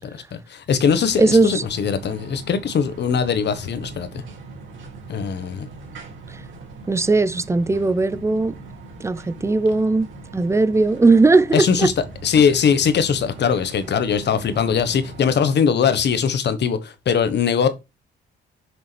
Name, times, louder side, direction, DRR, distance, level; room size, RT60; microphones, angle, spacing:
voice 1, 0.3-4.1 5.1-5.7 11.5-11.9 12.2-17.7, left 7 dB, 60° left, 1.3 m, -20 dB
sound 1, 0.8-15.3, right 3 dB, 75° right, 3.1 m, -40 dB
voice 2, 1.2-1.6 6.9-8.6 9.0-11.9, right 3 dB, 15° right, 0.6 m, -18 dB
6.7 x 6.6 x 3.4 m
cardioid pair, 90°, 20 cm